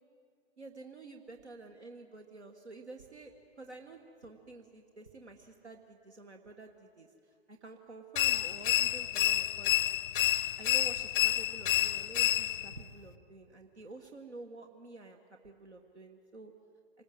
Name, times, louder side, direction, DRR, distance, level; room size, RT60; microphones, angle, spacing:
voice 1, 0.6-9.8 10.6-16.5, right 2 dB, 85° right, 3 dB, 1.6 m, -50 dB
sound 1, 8.2-12.8, left 13 dB, 50° left, 0.5 m, -29 dB
27.5 x 19.5 x 7.7 m, 2.3 s
figure-of-eight pair, 110°, 33 cm